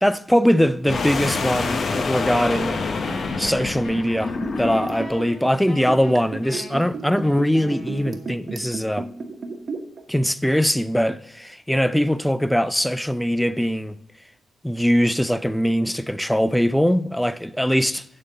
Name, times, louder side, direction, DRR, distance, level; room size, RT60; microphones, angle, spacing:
voice 1, 0.0-2.9 3.4-9.1 10.1-14.0 14.6-18.0, equal, 5° left, 0.3 m, -21 dB
sound 1, 0.8-5.2, left 4 dB, 50° left, 0.7 m, -26 dB
Wind instrument woodwind instrument, 2.3-8.6, left 1 dB, 65° left, 2.9 m, -41 dB
Liquid, 3.8-10.0 10.3-10.4, right 4 dB, 55° right, 1.1 m, -32 dB
9.5 x 3.7 x 6.6 m
cardioid pair, 85°, 0 cm